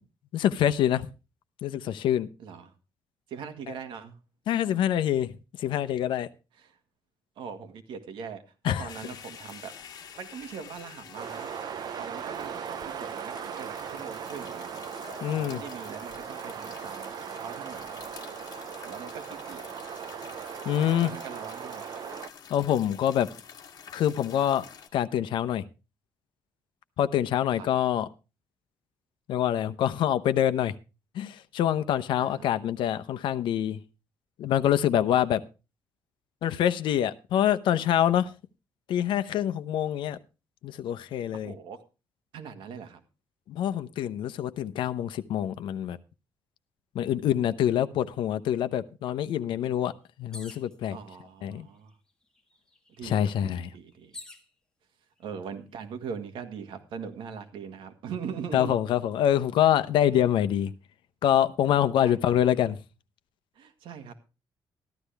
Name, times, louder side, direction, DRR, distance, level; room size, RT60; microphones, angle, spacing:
voice 1, 0.3-1.1 1.6-2.3 4.5-5.3 5.6-6.3 8.6-8.9 15.2-15.6 20.6-21.1 22.5-23.3 23.9-24.6 24.9-25.6 27.0-28.1 29.3-30.7 31.1-33.8 34.4-35.4 36.4-38.3 38.9-40.2 40.6-41.5 43.5-46.0 46.9-49.9 50.2-51.0 51.4-51.7 53.0-53.7 58.5-60.7 61.2-62.8, left 10 dB, 85° left, 0.8 m, -25 dB
voice 2, 2.4-2.7 3.3-4.2 6.5-6.8 7.4-9.7 10.2-14.8 15.3-17.1 17.4-18.0 18.8-19.7 21.0-21.9 27.5-27.7 32.2-32.5 35.1-35.2 41.4-41.8 42.3-43.0 50.9-51.9 53.0-54.1 55.2-58.8 62.0-62.4 63.6-64.2, right 6 dB, 85° right, 1.8 m, -41 dB
sound 1, 8.9-24.9, left 7 dB, 50° left, 1.7 m, -48 dB
sound 2, 11.2-22.3, right 8 dB, 55° right, 0.7 m, -38 dB
sound 3, 50.3-50.8 51.7-51.8 52.1-54.5 55.3-55.8, left 2 dB, 10° left, 1.7 m, -47 dB
14.0 x 12.0 x 3.4 m
cardioid pair, 160°, 8 cm